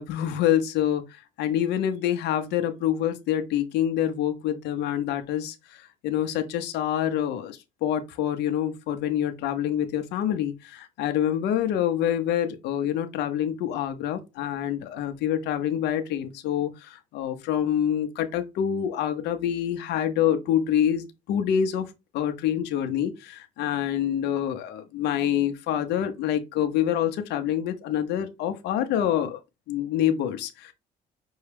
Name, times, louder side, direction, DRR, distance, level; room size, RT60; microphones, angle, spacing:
voice 1, 0.0-21.9 22.1-29.4 29.7-30.7, left 10 dB, 80° left, 0.7 m, -26 dB
5.4 x 2.3 x 3.4 m
cardioid pair, 110°, 17 cm